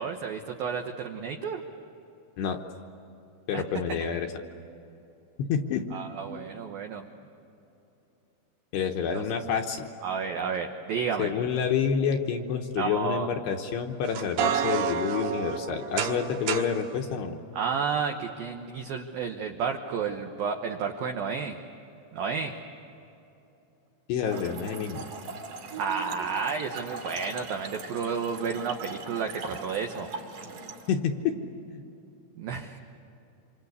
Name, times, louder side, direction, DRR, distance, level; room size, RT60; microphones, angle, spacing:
voice 1, 0.0-1.6 3.5-3.6 5.9-7.0 9.1-9.2 10.0-11.3 12.8-13.3 17.5-21.6 22.1-22.5 25.8-30.1 32.4-32.8, right 6 dB, 90° right, 4 dB, 2.1 m, -31 dB
voice 2, 3.5-4.3 5.4-6.0 8.7-9.9 11.2-17.4 24.1-25.0 30.9-31.4 31.7-31.8, left 7 dB, 70° left, 4 dB, 2.8 m, -28 dB
sound 1, 14.0-16.8, right 8 dB, 70° right, 3.5 m, -29 dB
Trickle dribble / Fill (with liquid), 24.2-30.9, right 3 dB, 50° right, 2.7 m, -40 dB
27.0 x 27.0 x 8.3 m, 2.9 s
omnidirectional pair, 5.9 m